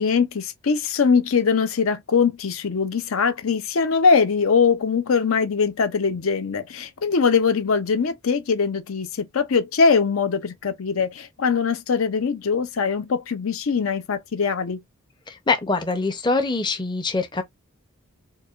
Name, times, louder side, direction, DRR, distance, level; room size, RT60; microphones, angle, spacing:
voice 1, 0.0-14.8, left 5 dB, 65° left, 0.5 m, -22 dB
voice 2, 15.3-17.4, left 3 dB, 20° left, 0.6 m, -24 dB
4.6 x 2.3 x 2.4 m
head